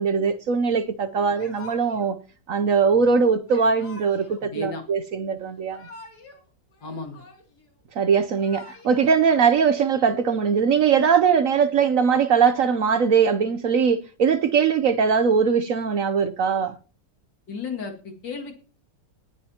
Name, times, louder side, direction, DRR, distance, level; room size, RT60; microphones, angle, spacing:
voice 1, 0.0-2.2 2.5-5.9 8.0-16.8, right 6 dB, 60° right, 0.9 m, -21 dB
Yell / Crying sobbing, 1.3-2.1 3.5-4.5 5.5-6.4 6.7-7.7 8.2-9.2, left 3 dB, 60° left, 3.3 m, -46 dB
voice 2, 4.5-4.8 6.8-7.3 17.5-18.5, left 3 dB, 80° left, 2.9 m, -33 dB
19.0 x 9.7 x 2.9 m
omnidirectional pair, 1.9 m